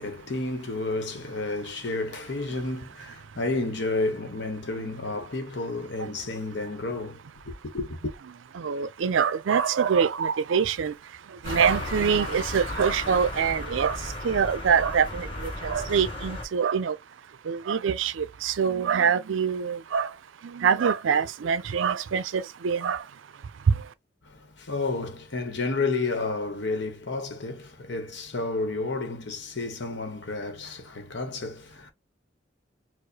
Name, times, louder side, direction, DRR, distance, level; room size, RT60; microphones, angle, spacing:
voice 1, 0.0-8.1 24.2-31.9, left 3 dB, 60° left, 0.9 m, -31 dB
voice 2, 8.5-10.9 11.4-14.0 14.2-17.0 17.5-20.1 20.5-23.0, right 7 dB, 80° right, 0.4 m, -25 dB
sound 1, 11.4-16.5, left 1 dB, 25° left, 1.4 m, -34 dB
4.7 x 2.0 x 2.7 m
head